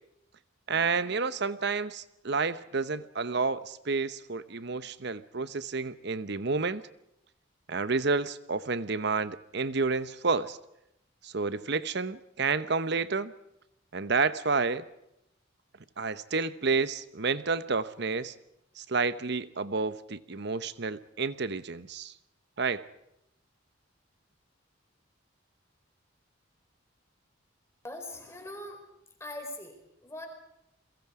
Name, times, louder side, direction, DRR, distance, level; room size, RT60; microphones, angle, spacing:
voice 1, 0.7-6.8 7.7-10.6 11.2-13.3 13.9-14.9 16.0-18.3 18.8-22.1 22.6-22.8, right 4 dB, 55° right, 14 dB, 1.0 m, -30 dB
voice 2, 27.8-28.8 29.2-29.7 30.0-30.3, left 1 dB, 15° left, 3 dB, 4.4 m, -41 dB
30.0 x 22.5 x 5.0 m, 0.83 s
head